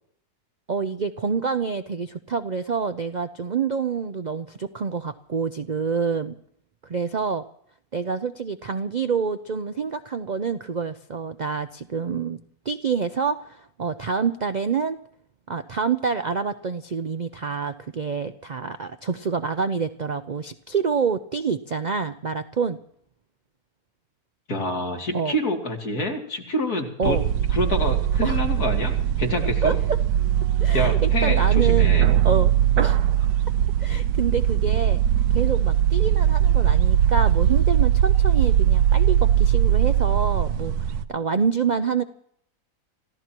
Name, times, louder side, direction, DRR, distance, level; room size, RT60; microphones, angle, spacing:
voice 1, 0.7-6.3 6.8-7.4 7.9-15.0 15.5-22.8 25.1-25.3 27.0-27.2 28.2-28.4 29.6-29.7 30.6-31.9 32.2-33.0 33.8-35.0 35.3-40.7 41.1-42.0, right 5 dB, 60° right, 10 dB, 0.4 m, -27 dB
voice 2, 24.5-27.2 27.5-29.8 30.7-32.1, left 1 dB, 80° left, 1 dB, 3.3 m, -27 dB
sound 1, 27.0-41.0, right 10 dB, 85° right, 1.3 m, -20 dB
28.0 x 15.5 x 3.0 m, 0.68 s
omnidirectional pair, 1.6 m